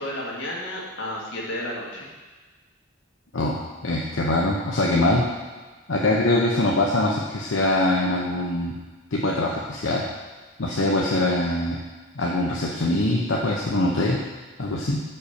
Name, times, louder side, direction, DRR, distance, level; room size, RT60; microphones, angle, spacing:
voice 1, 0.0-2.1, left 1 dB, 70° left, -4 dB, 2.0 m, -32 dB
voice 2, 3.3-5.3 5.9-8.7 9.1-10.0 10.6-11.8 12.1-14.2 14.6-15.0, left 1 dB, 90° left, -3 dB, 0.9 m, -23 dB
5.7 x 5.6 x 6.6 m, 1.3 s
head